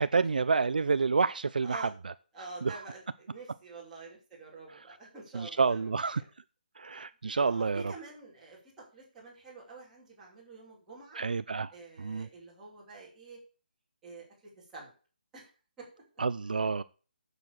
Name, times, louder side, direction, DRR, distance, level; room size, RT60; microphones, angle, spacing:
voice 1, 0.0-2.1 2.6-2.8 5.3-6.2 6.8-7.9 11.2-11.7 12.0-12.3 16.2-16.8, right 4 dB, 60° right, 13 dB, 0.5 m, -28 dB
voice 2, 2.3-5.8 6.1-6.2 7.4-11.2 11.7-13.4 14.0-14.9 15.3-15.5 15.8-15.9, right 3 dB, 5° right, -7 dB, 2.8 m, -47 dB
9.6 x 7.0 x 6.5 m, 0.37 s
hypercardioid pair, 180°, 5 cm